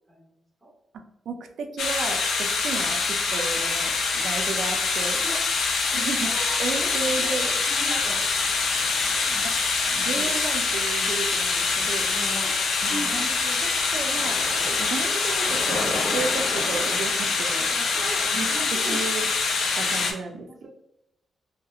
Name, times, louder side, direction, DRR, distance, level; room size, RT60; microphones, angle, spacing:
voice 1, 0.9-5.2 5.9-6.3 6.6-7.5 9.4-9.5 9.9-12.1 12.8-13.3 13.9-14.4 14.7-17.7 18.3-19.2 19.6-20.7, right 4 dB, 75° right, 6 dB, 0.3 m, -33 dB
sound 1, 1.8-20.1, left 4 dB, 85° left, 0.4 m, -25 dB
voice 2, 6.2-8.2 9.2-9.4 9.8-10.3 12.0-12.5 12.8-13.7 17.7-19.0 20.5-20.7, equal, 5° right, -12 dB, 1.1 m, -38 dB
2.8 x 2.0 x 2.3 m, 0.80 s
wide cardioid pair, 140°, 0 cm